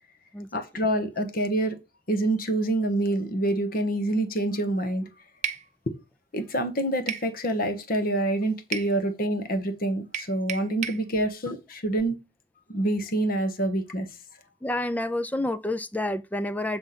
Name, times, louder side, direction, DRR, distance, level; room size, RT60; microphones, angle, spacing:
voice 1, 0.5-1.8 2.1-5.1 5.9-6.0 6.3-12.2 12.7-14.1, right 1 dB, 50° left, 1.0 m, -26 dB
sound 1, 5.4-5.7 7.1-7.3 8.7-8.9 10.1-11.0, right 8 dB, 40° right, 0.6 m, -32 dB
voice 2, 14.6-16.8, left 1 dB, 10° left, 0.3 m, -29 dB
7.8 x 3.6 x 5.7 m
head